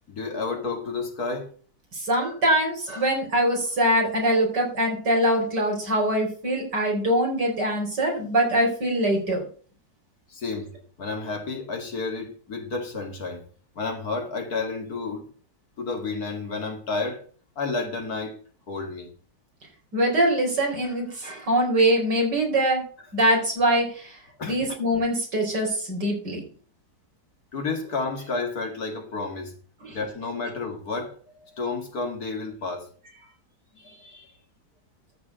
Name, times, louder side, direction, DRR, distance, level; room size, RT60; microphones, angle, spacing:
voice 1, 0.1-1.5 10.3-10.7 11.0-13.4 13.8-15.3 15.8-17.2 17.6-18.4 18.7-19.1 24.4-24.7 27.5-29.5 29.9-32.9 33.8-34.3, left 3 dB, 60° left, 2.7 m, -31 dB
voice 2, 1.9-9.4 19.9-22.8 23.1-24.2 24.5-26.4 29.8-29.9, right 1 dB, 80° right, 5.2 m, -23 dB
13.5 x 4.8 x 8.3 m
omnidirectional pair, 1.8 m